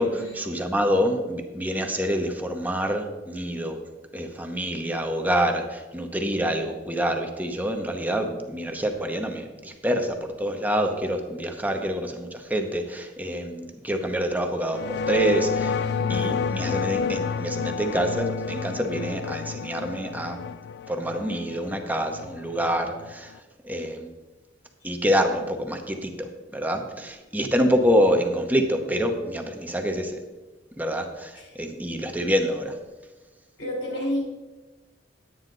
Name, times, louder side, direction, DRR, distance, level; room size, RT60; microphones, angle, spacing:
voice 1, 0.0-3.8 4.1-14.8 15.1-15.7 16.1-20.4 20.9-23.3 23.6-24.1 24.8-30.2 30.8-32.8, equal, 10° right, 4 dB, 0.8 m, -26 dB
sound 1, 14.7-23.4, left 6 dB, 65° left, 0.3 m, -30 dB
voice 2, 15.7-16.3 31.4-31.5 33.6-34.2, left 1 dB, 85° left, -2 dB, 3.9 m, -31 dB
10.5 x 9.3 x 3.9 m, 1.2 s
head